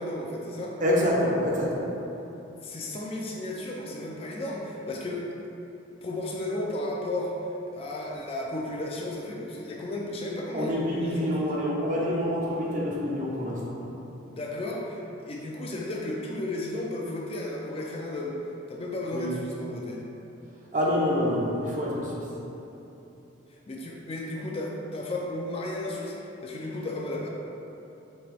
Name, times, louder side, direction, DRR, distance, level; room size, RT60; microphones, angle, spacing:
voice 1, 0.0-0.8 2.6-5.3 6.0-11.5 14.3-18.4 18.7-20.0 23.5-27.3, left 1 dB, 30° left, -2 dB, 0.4 m, -34 dB
voice 2, 0.8-1.9 10.5-13.8 19.1-19.3 20.7-22.3, equal, 40° right, -4 dB, 0.7 m, -27 dB
5.2 x 2.9 x 3.4 m, 3.0 s
head